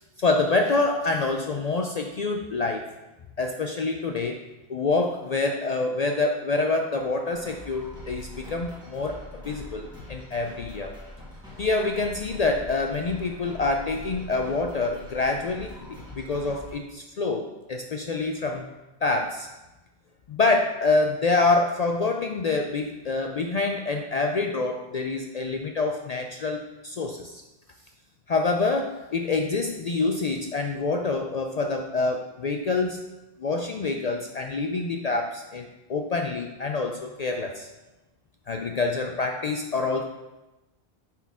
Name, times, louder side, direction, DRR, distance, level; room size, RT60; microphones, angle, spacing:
voice 1, 0.2-2.9 3.4-4.4 4.7-10.9 11.6-18.7 19.0-19.5 20.3-27.4 28.3-33.0 33.4-37.7 38.5-40.0, left 3 dB, 55° left, 3 dB, 0.5 m, -26 dB
sound 1, 7.3-16.7, left 1 dB, 5° right, 2.0 m, -43 dB
9.5 x 4.4 x 3.6 m, 1.0 s
omnidirectional pair, 1.1 m